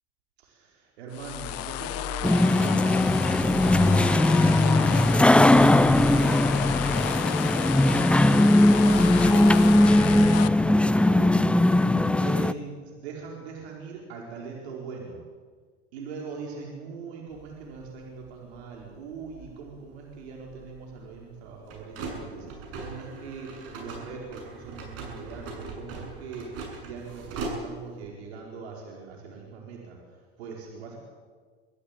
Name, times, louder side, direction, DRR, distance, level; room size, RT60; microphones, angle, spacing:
voice 1, 0.4-4.9 5.4-11.4 12.2-15.2 15.9-31.0, right 5 dB, 75° right, -1 dB, 4.9 m, -41 dB
sound 1, 1.1-10.5, left 14 dB, 50° left, 1.2 m, -32 dB
sound 2, 2.2-12.5, left 1 dB, 5° left, 0.6 m, -19 dB
sound 3, 17.3-28.0, right 3 dB, 45° right, 7.7 m, -41 dB
24.5 x 15.0 x 8.7 m, 1.5 s
hypercardioid pair, 100°, 32 cm